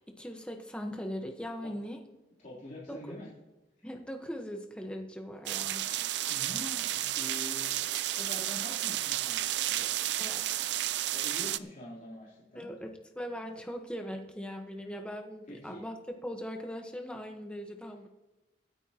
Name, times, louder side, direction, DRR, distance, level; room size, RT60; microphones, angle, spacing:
voice 1, 0.0-2.0 2.9-3.2 3.8-6.3 10.2-10.4 12.5-16.0 16.2-18.1, equal, 5° left, 3 dB, 1.2 m, -40 dB
voice 2, 2.4-3.3 6.3-9.4 9.7-10.0 11.1-12.7 15.5-15.8, left 1 dB, 45° left, -8 dB, 3.7 m, -45 dB
sound 1, 5.5-11.6, right 13 dB, 70° right, 0.4 m, -32 dB
25.0 x 9.0 x 3.0 m, 1.0 s
head